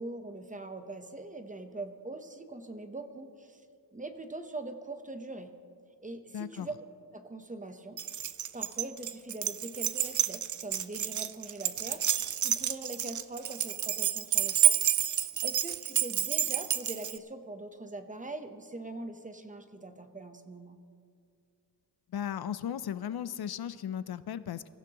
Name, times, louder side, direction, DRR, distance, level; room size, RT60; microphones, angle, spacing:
voice 1, 0.0-3.6 3.9-5.5 6.0-6.7 7.1-8.0 8.5-12.0 12.4-14.7 15.4-20.8, right 2 dB, 20° right, 7 dB, 0.9 m, -42 dB
voice 2, 6.3-6.7 22.1-24.7, left 9 dB, 60° left, 14 dB, 0.5 m, -36 dB
Keys jangling, 8.0-17.2, right 10 dB, 45° right, 0.5 m, -29 dB
24.5 x 15.5 x 3.0 m, 2.2 s
wide cardioid pair, 140°, 42 cm